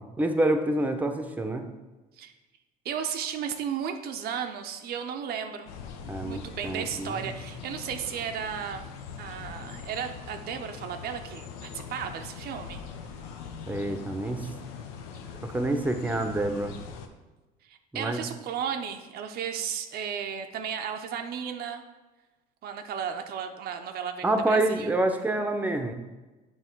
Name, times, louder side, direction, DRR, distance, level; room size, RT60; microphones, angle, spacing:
voice 1, 0.0-1.7 6.1-7.3 13.7-14.5 15.4-16.7 17.9-18.2 24.2-25.9, right 1 dB, 10° right, 6 dB, 0.6 m, -27 dB
voice 2, 2.8-5.7 6.1-8.8 9.2-12.8 17.6-21.8 22.6-24.9, right 8 dB, 60° right, 6 dB, 0.5 m, -34 dB
sound 1, 5.7-17.1, left 6 dB, 90° left, 0.6 m, -42 dB
7.1 x 3.1 x 4.5 m, 1.2 s
supercardioid pair, 85°, 18 cm